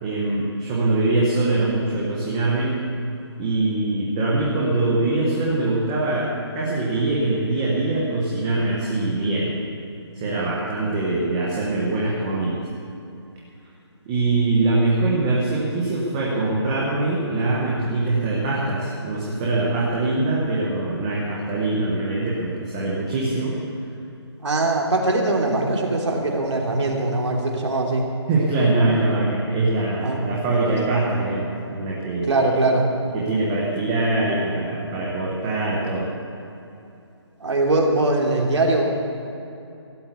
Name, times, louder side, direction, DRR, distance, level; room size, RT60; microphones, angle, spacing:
voice 1, 0.0-2.8 3.4-6.3 6.5-9.5 10.1-12.6 14.1-23.6 28.3-32.3 33.1-36.1, right 2 dB, 10° right, -5 dB, 1.0 m, -23 dB
voice 2, 24.4-28.1 30.0-30.2 30.5-30.7 32.3-32.8 37.4-38.8, right 2 dB, 80° right, -1 dB, 3.0 m, -21 dB
16.0 x 8.2 x 8.2 m, 2.7 s
hypercardioid pair, 175°, 15 cm